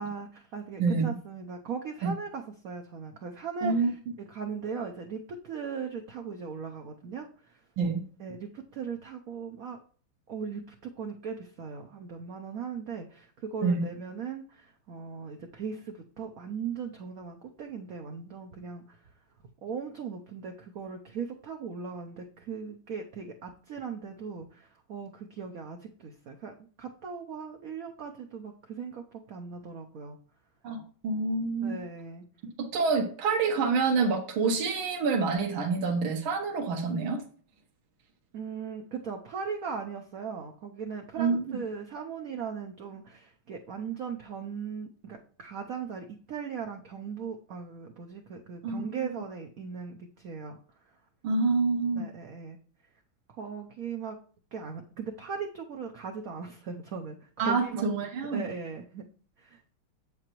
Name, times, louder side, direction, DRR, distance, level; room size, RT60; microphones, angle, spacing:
voice 1, 0.0-3.9 4.3-7.6 8.2-9.8 10.3-19.0 19.6-30.2 31.6-32.2 38.3-50.6 51.9-52.6 53.3-54.2 54.5-57.8 58.3-59.0 59.4-59.6, right 6 dB, 65° right, 3 dB, 0.9 m, -38 dB
voice 2, 3.6-3.9 7.8-8.0 13.6-13.9 30.6-31.8 32.6-37.2 41.2-41.6 48.6-48.9 51.2-52.1 57.4-58.5, right 4 dB, 80° right, 2 dB, 1.9 m, -27 dB
7.8 x 7.6 x 3.0 m, 0.43 s
omnidirectional pair, 2.2 m